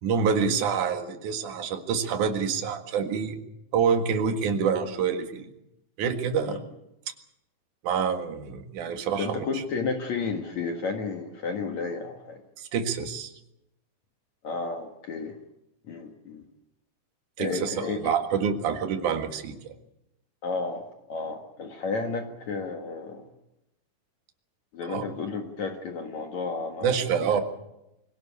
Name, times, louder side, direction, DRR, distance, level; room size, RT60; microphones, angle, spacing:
voice 1, 0.0-3.4 3.7-5.5 6.0-6.6 7.8-9.6 12.6-13.3 17.4-19.6 24.9-25.0 26.8-27.4, right 6 dB, 55° right, 6 dB, 3.0 m, -27 dB
voice 2, 9.2-12.4 14.4-15.4 15.9-16.4 17.4-18.2 20.4-23.2 24.7-27.0, left 4 dB, 55° left, 4 dB, 2.5 m, -32 dB
24.0 x 17.0 x 8.4 m, 0.88 s
omnidirectional pair, 4.6 m